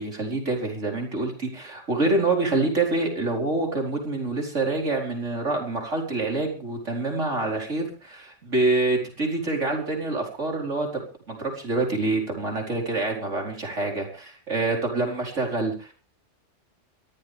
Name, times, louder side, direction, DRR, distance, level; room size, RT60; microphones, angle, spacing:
voice 1, 0.0-11.0 11.3-15.9, right 2 dB, 85° right, 1 dB, 5.1 m, -26 dB
23.5 x 14.5 x 3.5 m, 0.36 s
omnidirectional pair, 1.2 m